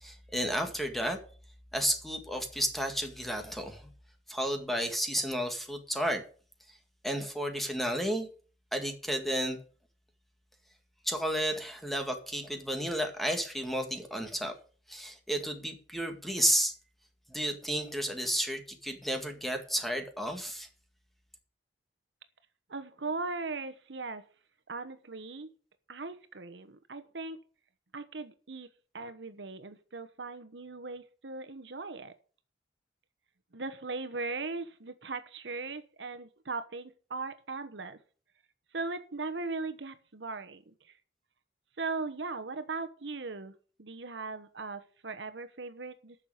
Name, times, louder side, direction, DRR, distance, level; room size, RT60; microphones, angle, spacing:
voice 1, 0.0-1.2 1.7-3.8 4.3-6.2 7.0-8.3 8.7-9.6 11.0-14.5 14.9-16.7 17.3-20.7, equal, ahead, 1.9 m, -32 dB
voice 2, 22.7-24.2 24.7-25.5 25.9-27.4 27.9-28.7 28.9-32.1 33.5-38.0 38.7-40.7 41.8-43.5 43.8-46.3, right 3 dB, 75° right, 1.1 m, -38 dB
9.9 x 6.7 x 8.0 m
head